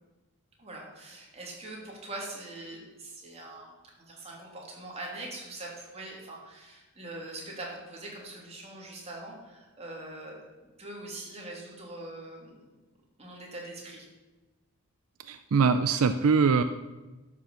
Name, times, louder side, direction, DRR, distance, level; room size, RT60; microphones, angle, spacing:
voice 1, 0.6-10.4 10.8-12.7 13.2-14.0, right 2 dB, 30° right, -2 dB, 3.0 m, -42 dB
voice 2, 15.3-16.6, right 5 dB, 75° right, 10 dB, 0.5 m, -23 dB
11.5 x 6.2 x 7.1 m, 1.1 s
head